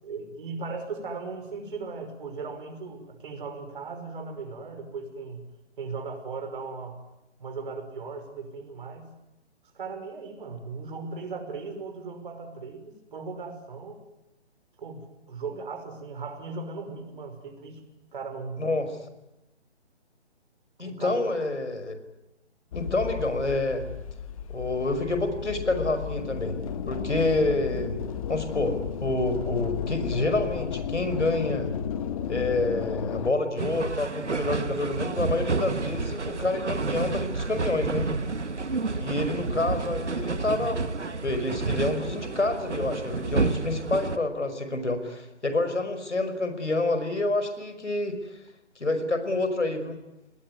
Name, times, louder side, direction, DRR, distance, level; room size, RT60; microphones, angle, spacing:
voice 1, 0.0-5.4 5.8-7.0 7.4-9.1 9.7-14.0 14.8-17.8 18.1-18.6 20.8-21.3 35.5-35.7 37.8-38.3 43.4-43.6, right 4 dB, 45° right, 7 dB, 5.8 m, -37 dB
voice 2, 20.8-21.9 22.7-23.8 24.5-26.5 26.9-28.0 28.3-31.7 32.3-38.1 39.0-40.9 41.2-48.2 48.8-50.0, left 2 dB, 85° left, 9 dB, 5.6 m, -28 dB
sound 1, 22.7-33.3, left 8 dB, 30° left, 1.4 m, -33 dB
sound 2, 33.6-44.2, right 3 dB, 80° right, 2.0 m, -30 dB
29.5 x 20.0 x 9.7 m, 0.92 s
figure-of-eight pair, 145°, 34 cm